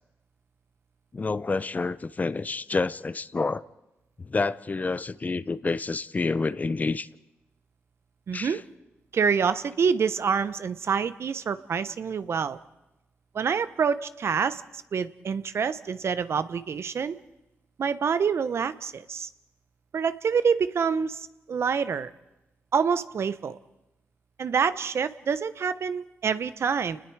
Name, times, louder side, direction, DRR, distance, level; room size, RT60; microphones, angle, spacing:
voice 1, 1.1-3.7 4.2-7.1 8.3-8.6, left 3 dB, 35° left, 0.6 m, -28 dB
voice 2, 8.3-8.6 9.1-12.6 13.3-17.2 17.8-19.3 19.9-22.1 22.7-23.6 24.4-27.0, right 6 dB, 60° right, 0.9 m, -27 dB
29.5 x 20.0 x 4.7 m
cardioid pair, 70°, 5 cm